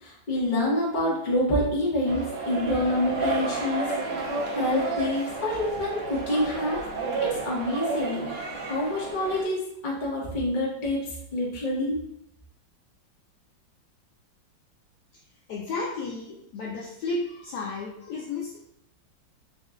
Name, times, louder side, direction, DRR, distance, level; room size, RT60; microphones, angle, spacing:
voice 1, 0.0-3.9 4.5-6.8 7.2-8.3 8.6-11.0 11.3-12.0, left 1 dB, 35° left, -4 dB, 0.9 m, -27 dB
sound 1, 2.1-9.4, right 3 dB, 75° right, 1.4 m, -31 dB
voice 2, 15.5-18.6, left 3 dB, 70° left, -2 dB, 1.0 m, -33 dB
4.1 x 2.2 x 3.6 m, 0.75 s
omnidirectional pair, 2.1 m